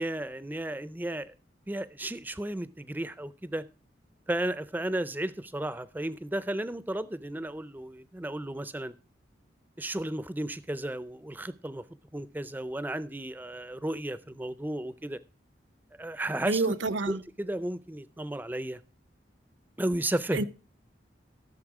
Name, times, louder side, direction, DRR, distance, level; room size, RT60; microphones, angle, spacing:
voice 1, 0.0-1.3 1.7-3.7 4.3-8.9 9.8-11.8 12.1-15.2 16.0-16.7 17.1-18.8 19.8-20.4, right 1 dB, 10° right, 0.5 m, -33 dB
voice 2, 16.5-17.2 20.3-20.4, right 3 dB, 85° right, 0.8 m, -28 dB
14.5 x 7.0 x 4.9 m
head